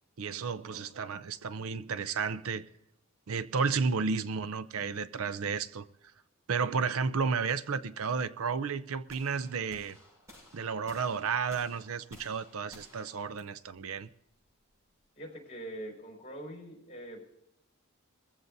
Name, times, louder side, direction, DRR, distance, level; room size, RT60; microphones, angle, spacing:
voice 1, 0.2-2.7 3.3-5.9 6.5-10.0 10.5-14.1, right 5 dB, 75° right, 0.5 m, -32 dB
voice 2, 0.7-1.2 15.2-17.4, right 1 dB, 30° left, 5.1 m, -44 dB
sound 1, 9.1-15.2, left 1 dB, 15° right, 7.0 m, -56 dB
22.5 x 15.0 x 2.7 m
head